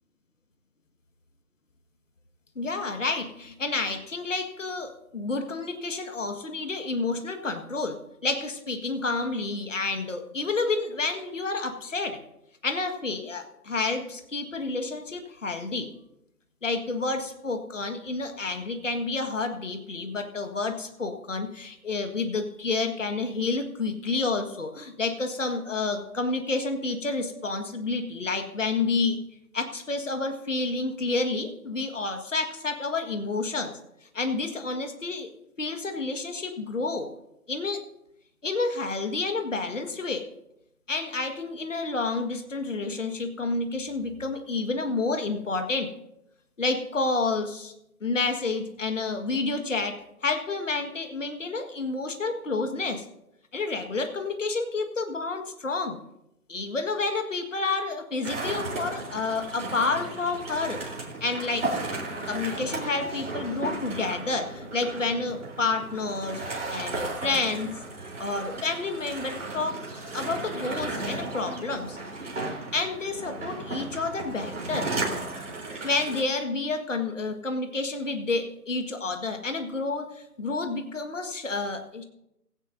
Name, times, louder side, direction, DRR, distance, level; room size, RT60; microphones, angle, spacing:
voice 1, 2.6-12.2 12.6-15.9 16.6-29.2 29.5-33.8 34.1-35.3 35.6-37.1 37.5-37.8 38.4-40.2 40.9-45.9 46.6-47.7 48.0-53.1 53.5-56.0 56.5-60.8 61.2-61.8 62.3-66.4 66.7-67.7 68.2-69.8 70.1-72.0 72.7-74.9 75.8-82.0, left 3 dB, 50° left, 6 dB, 1.7 m, -29 dB
sound 1, 58.2-76.2, right 2 dB, 50° right, 3.8 m, -35 dB
16.5 x 16.5 x 2.7 m, 0.83 s
figure-of-eight pair, 175°, 47 cm